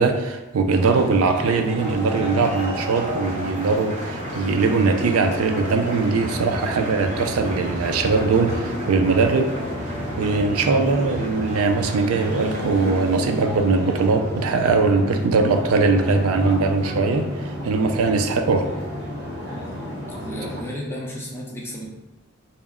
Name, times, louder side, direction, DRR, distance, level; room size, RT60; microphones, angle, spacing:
voice 1, 0.0-9.5 10.2-18.7, right 4 dB, 90° right, 6 dB, 0.4 m, -21 dB
sound 1, 0.7-20.6, equal, 50° right, 1.4 m, -31 dB
sound 2, 1.4-13.1, right 1 dB, 35° right, 0.8 m, -36 dB
voice 2, 20.2-21.9, equal, 10° left, -3 dB, 0.6 m, -32 dB
4.2 x 2.0 x 3.5 m, 1.1 s
head